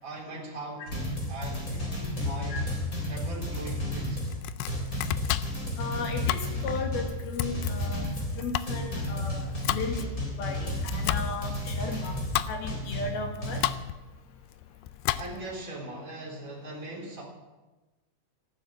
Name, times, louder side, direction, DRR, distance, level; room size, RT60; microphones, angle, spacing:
voice 1, 0.0-2.6 3.1-4.2 15.2-17.2, right 2 dB, 20° right, -2 dB, 3.7 m, -40 dB
sound 1, 0.9-13.6, left 1 dB, 20° left, 3.4 m, -33 dB
Domestic sounds home sounds, 4.2-15.6, left 14 dB, 85° left, 2.7 m, -34 dB
voice 2, 5.8-8.1 8.4-10.1 10.4-12.2 12.5-13.6, left 3 dB, 65° left, 3 dB, 3.8 m, -35 dB
14.0 x 12.0 x 7.6 m, 1.1 s
omnidirectional pair, 4.8 m